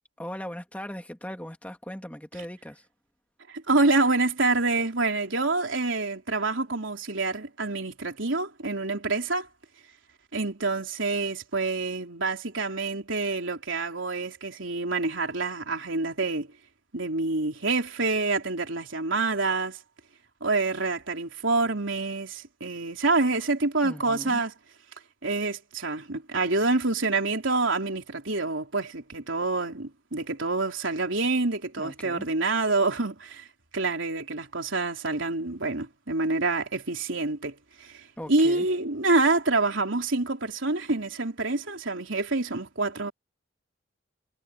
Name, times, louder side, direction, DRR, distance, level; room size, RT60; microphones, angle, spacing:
voice 1, 0.2-2.9 23.8-24.4 31.8-32.3 38.2-38.7, equal, 5° left, 2.5 m, -39 dB
voice 2, 3.5-9.5 10.3-16.5 16.9-19.8 20.4-24.5 25.2-33.5 33.7-43.1, right 3 dB, 70° right, 3.7 m, -27 dB
head